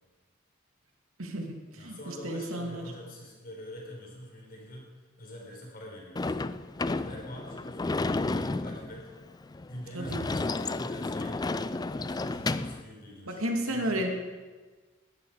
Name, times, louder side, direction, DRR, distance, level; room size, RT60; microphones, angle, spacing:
voice 1, 1.2-2.9 9.9-10.2 13.3-14.1, right 1 dB, 85° right, 2 dB, 2.5 m, -32 dB
voice 2, 1.8-4.9 5.2-6.4 6.9-9.1 9.7-11.4 11.9-14.1, equal, 45° left, -1 dB, 4.7 m, -44 dB
Sliding door / Slam, 6.2-12.8, left 3 dB, 20° left, 0.4 m, -32 dB
19.5 x 12.5 x 4.9 m, 1.4 s
head